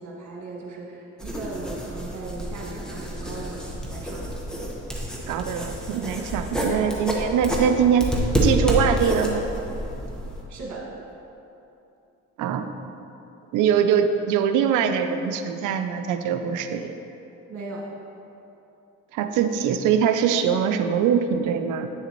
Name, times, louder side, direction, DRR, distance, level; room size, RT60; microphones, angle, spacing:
voice 1, 0.0-4.3 10.2-10.9 17.5-17.9, right 3 dB, 65° right, -3 dB, 1.8 m, -37 dB
sound 1, 1.2-10.4, equal, ahead, 1.2 m, -28 dB
voice 2, 5.3-8.2 8.4-9.5 12.4-12.7 13.5-17.0 19.1-21.9, right 8 dB, 90° right, 8 dB, 0.5 m, -23 dB
9.3 x 6.6 x 3.0 m, 2.9 s
cardioid pair, 90°, 30 cm